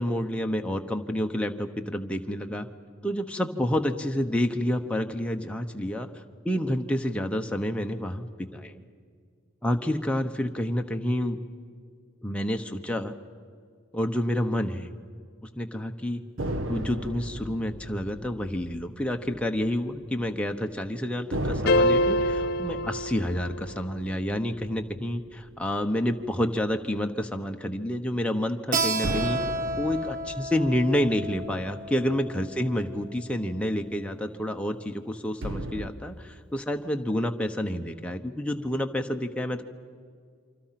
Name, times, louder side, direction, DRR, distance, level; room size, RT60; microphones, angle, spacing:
voice 1, 0.0-2.7 3.0-6.1 6.4-8.3 8.5-8.8 9.6-11.4 12.2-13.1 13.9-14.9 15.5-16.2 16.7-29.4 29.8-39.6, equal, 5° left, 4 dB, 1.0 m, -29 dB
sound 1, 16.4-20.1 20.4-20.5 21.3-25.9 29.0-32.6 35.4-35.9, right 1 dB, 60° right, 1.2 m, -36 dB
sound 2, 21.7-23.9, left 1 dB, 45° left, 0.7 m, -25 dB
Keyboard (musical), 28.7-34.0, right 2 dB, 40° right, 0.9 m, -33 dB
27.5 x 25.5 x 5.9 m, 2.1 s
head